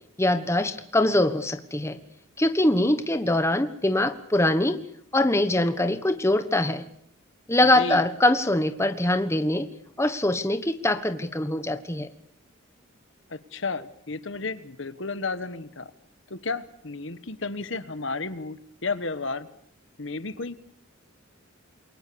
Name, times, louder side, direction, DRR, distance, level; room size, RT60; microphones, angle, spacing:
voice 1, 0.2-2.0 2.4-4.8 5.1-6.9 7.5-9.7 10.0-12.1, left 1 dB, 15° left, 10 dB, 1.3 m, -23 dB
voice 2, 13.3-15.9 16.3-19.5 20.0-20.6, left 3 dB, 60° left, 14 dB, 1.3 m, -32 dB
28.5 x 23.0 x 7.0 m, 0.65 s
head